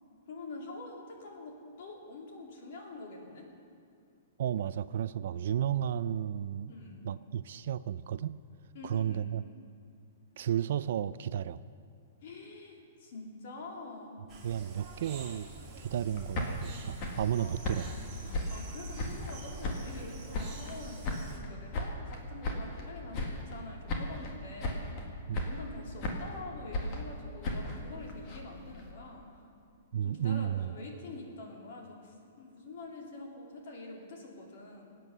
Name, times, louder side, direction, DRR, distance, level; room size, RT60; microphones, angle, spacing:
voice 1, 0.3-3.4 6.7-7.0 8.7-9.3 12.2-14.2 17.4-17.5 18.2-24.9 25.4-29.3 30.0-34.8, left 2 dB, 45° left, 0 dB, 3.0 m, -46 dB
voice 2, 4.4-6.7 7.0-8.4 8.8-9.4 10.4-11.6 14.4-15.5 15.8-17.9 25.3-25.5 29.9-30.7, right 10 dB, 50° right, 15 dB, 0.4 m, -33 dB
sound 1, 14.3-21.4, right 3 dB, 15° right, 2.1 m, -47 dB
sound 2, 16.1-19.4 19.6-20.8 21.0-22.9 23.1-23.6 23.9-24.3 24.6-25.0 25.3-26.4 26.7-28.9, left 2 dB, 25° left, 1.8 m, -36 dB
23.5 x 9.1 x 6.8 m, 2.5 s
hypercardioid pair, 175°, 0 cm